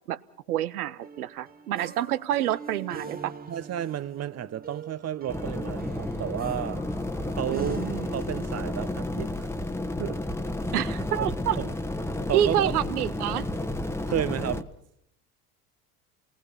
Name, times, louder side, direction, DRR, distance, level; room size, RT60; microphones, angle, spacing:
voice 1, 0.5-3.3 7.5-8.1 10.7-11.6 12.3-13.5, right 12 dB, 90° right, 0.9 m, -28 dB
sound 1, 1.0-9.0, right 5 dB, 20° right, 1.3 m, -43 dB
voice 2, 3.5-6.8 7.4-7.8 8.1-9.5 10.0-10.2 11.2-11.7 12.3-12.8 14.1-14.7, right 11 dB, 35° right, 0.9 m, -32 dB
sound 2, 5.3-14.6, left 1 dB, 5° left, 1.3 m, -31 dB
28.5 x 19.5 x 5.7 m
hypercardioid pair, 80°, 43 cm